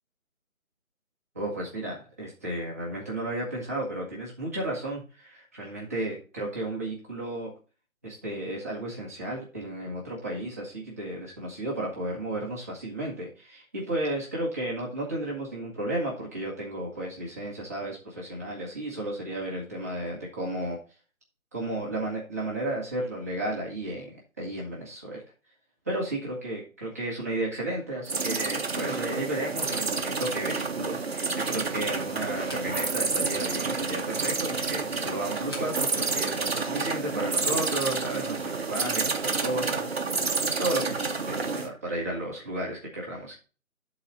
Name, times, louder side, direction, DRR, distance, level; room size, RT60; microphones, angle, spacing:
voice 1, 1.3-7.5 8.0-20.8 21.5-25.2 25.8-40.3 40.6-43.4, right 1 dB, 10° right, -5 dB, 1.1 m, -33 dB
sound 1, 28.1-28.8 29.5-29.9 30.4-30.5 31.2-31.8 32.3-33.1 33.3-33.4 34.4-34.8 35.3-35.8, equal, 20° left, 1.0 m, -45 dB
sound 2, 28.1-41.7, right 4 dB, 50° right, 0.8 m, -29 dB
12.0 x 4.1 x 4.0 m, 0.34 s
figure-of-eight pair, 165°, 42 cm